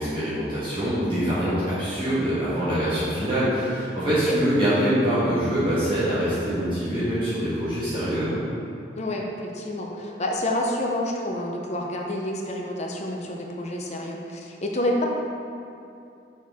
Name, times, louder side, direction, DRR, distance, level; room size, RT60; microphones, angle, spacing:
voice 1, 0.0-8.4, equal, 30° right, -12 dB, 1.4 m, -24 dB
voice 2, 9.0-15.0, left 1 dB, 35° left, 0 dB, 0.6 m, -28 dB
5.8 x 4.6 x 3.5 m, 2.7 s
head